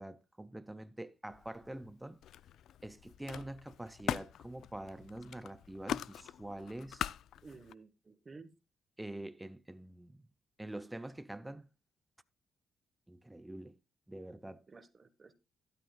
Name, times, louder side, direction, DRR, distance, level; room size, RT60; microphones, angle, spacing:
voice 1, 0.0-2.2 2.8-7.0 9.0-10.2 10.6-11.7 13.1-13.8 14.1-14.6, right 1 dB, 10° right, 0.6 m, -45 dB
Camera, 1.3-1.9 2.2-7.7, left 10 dB, 75° left, 0.4 m, -42 dB
voice 2, 7.4-8.5 14.7-15.3, right 4 dB, 30° right, 1.2 m, -53 dB
13.0 x 11.5 x 2.3 m
cardioid pair, 90°, 0 cm